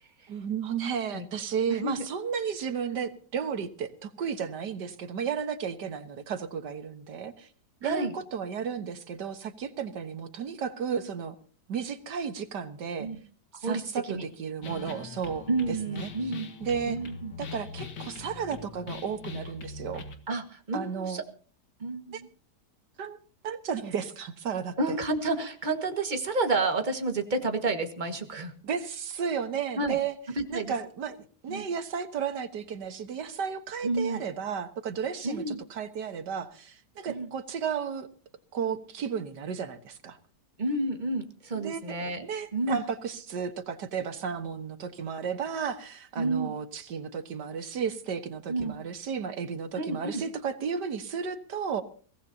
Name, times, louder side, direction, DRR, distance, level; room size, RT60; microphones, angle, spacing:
voice 1, 0.3-7.5 7.8-11.4 11.7-13.1 13.5-16.1 16.6-17.0 17.4-20.1 20.7-21.2 22.1-22.2 23.0-23.2 23.4-24.8 28.6-30.2 30.5-31.2 31.4-38.1 38.5-40.2 41.6-42.0 42.2-51.8, right 6 dB, 85° right, 9 dB, 2.0 m, -33 dB
voice 2, 1.7-2.1 7.8-8.1 13.0-13.2 13.6-14.3 15.5-16.5 16.9-17.3 20.3-21.2 21.8-22.3 24.8-28.5 29.8-30.0 30.4-30.7 31.5-31.7 33.8-34.2 35.2-35.6 37.1-37.3 40.6-42.3 42.5-42.8 46.2-46.5 48.5-48.8 49.8-50.2, right 2 dB, 30° right, 6 dB, 1.8 m, -30 dB
sound 1, 14.6-20.2, left 4 dB, 85° left, 2.3 m, -42 dB
23.0 x 17.5 x 2.8 m, 0.42 s
omnidirectional pair, 1.8 m